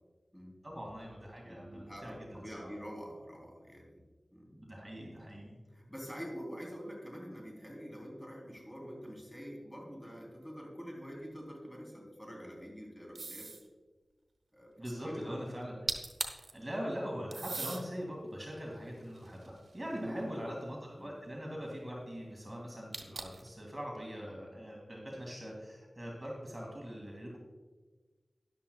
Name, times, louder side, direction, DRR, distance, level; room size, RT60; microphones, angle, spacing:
voice 1, 0.6-2.7 4.5-5.6 14.8-15.8 16.5-27.4, equal, 25° right, -2 dB, 2.3 m, -42 dB
voice 2, 1.4-4.0 4.3-4.5 5.7-13.5 14.5-15.4 19.9-20.5 21.0-21.1, equal, 5° left, -2 dB, 3.5 m, -46 dB
sound 1, 13.2-13.7 15.6-15.7 15.9-16.5 17.3-17.8 18.5-20.0 22.9-23.5, right 3 dB, 90° right, 1.0 m, -39 dB
13.0 x 11.0 x 2.3 m, 1.3 s
wide cardioid pair, 65°, 0 cm